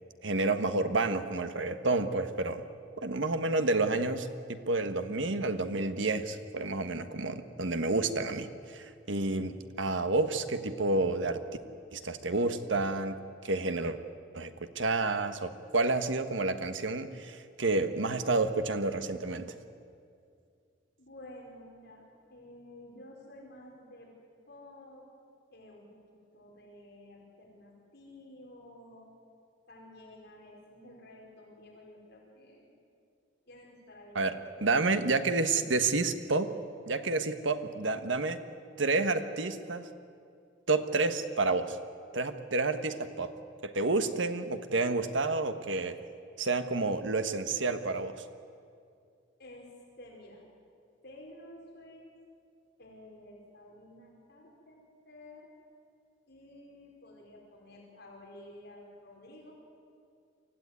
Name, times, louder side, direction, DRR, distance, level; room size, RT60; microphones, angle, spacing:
voice 1, 0.2-2.6 3.0-11.4 11.9-13.2 13.4-14.0 14.3-19.6 34.1-36.5 36.9-38.4 38.8-39.9 40.7-41.8 42.1-43.3 43.6-46.0 46.4-48.1, right 3 dB, 75° right, 9 dB, 1.4 m, -30 dB
voice 2, 21.0-24.1 24.5-25.1 25.5-29.1 29.7-32.7 33.5-34.2 34.6-35.0 49.4-49.7 50.0-50.4 51.0-52.2 52.8-55.5 56.3-59.5, left 1 dB, 60° left, -2 dB, 4.8 m, -52 dB
24.5 x 16.0 x 9.6 m, 2.4 s
head